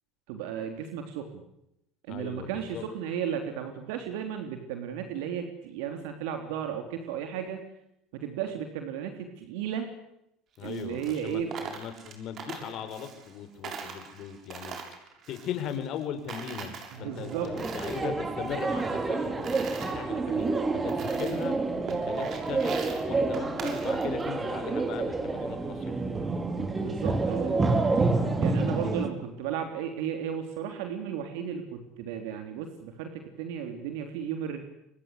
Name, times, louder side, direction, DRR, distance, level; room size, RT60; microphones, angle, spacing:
voice 1, 0.3-1.4 2.1-7.7 8.1-9.9 10.6-11.5 16.9-17.5 26.8-27.6 28.4-34.6, right 8 dB, 75° right, 6 dB, 3.5 m, -34 dB
voice 2, 2.1-2.9 10.6-14.8 15.3-20.5 20.7-21.5 21.8-26.0, left 9 dB, 55° left, 9 dB, 5.8 m, -39 dB
Coin (dropping), 10.6-13.4 13.6-16.0 16.3-18.1 18.4-19.9 20.5-20.6 20.9-21.5 21.9-24.3, right 6 dB, 50° right, 6.8 m, -42 dB
sound 1, 17.1-29.1, right 3 dB, 25° right, 4.5 m, -28 dB
29.0 x 23.5 x 8.3 m, 0.81 s
hypercardioid pair, 80°, 0 cm